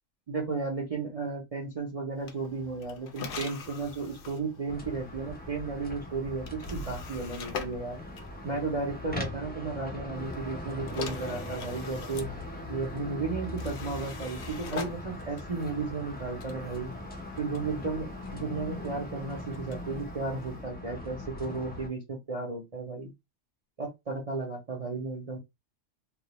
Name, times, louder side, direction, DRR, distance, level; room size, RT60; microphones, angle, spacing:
voice 1, 0.3-8.0 8.4-12.3 12.7-16.9 17.4-23.1 23.8-25.4, right 3 dB, 40° right, 0.6 m, -34 dB
sound 1, 2.2-9.1 10.1-20.7, left 5 dB, 60° left, 0.6 m, -44 dB
sound 2, 4.7-21.9, left 1 dB, 15° left, 0.3 m, -40 dB
2.4 x 2.1 x 2.9 m
omnidirectional pair, 1.2 m